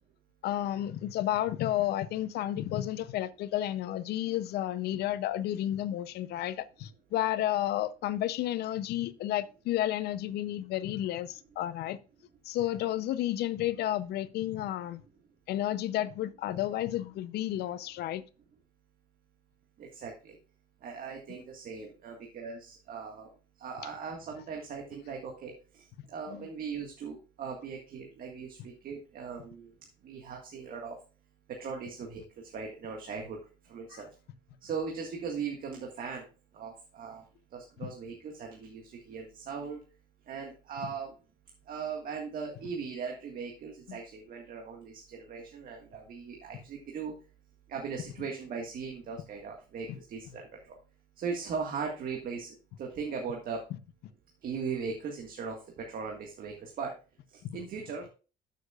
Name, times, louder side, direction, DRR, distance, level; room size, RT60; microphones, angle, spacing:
voice 1, 0.4-12.0 12.4-15.0 15.5-18.2 26.3-26.5 33.9-34.0 37.8-37.9 43.9-44.0 57.4-57.6, left 13 dB, 75° left, 0.6 m, -32 dB
voice 2, 19.8-20.4 20.8-23.3 23.6-29.7 30.0-31.0 31.5-33.4 33.7-34.1 34.6-36.2 36.5-37.2 37.5-39.8 40.3-41.1 41.7-47.1 47.7-50.8 51.2-53.6 54.4-56.9 57.3-58.1, right 5 dB, 55° right, 1.8 m, -39 dB
13.0 x 6.6 x 2.4 m
cardioid pair, 110°, 17 cm